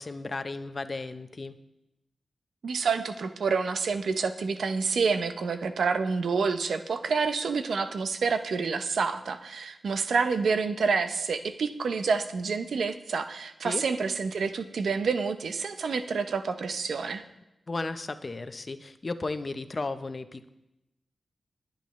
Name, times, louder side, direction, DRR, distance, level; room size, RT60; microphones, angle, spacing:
voice 1, 0.0-1.6 13.6-13.8 17.7-20.5, left 3 dB, 40° left, 10 dB, 0.8 m, -34 dB
voice 2, 2.6-17.2, right 5 dB, 80° right, 9 dB, 0.8 m, -28 dB
21.0 x 8.9 x 3.2 m, 0.91 s
cardioid pair, 75°, 0 cm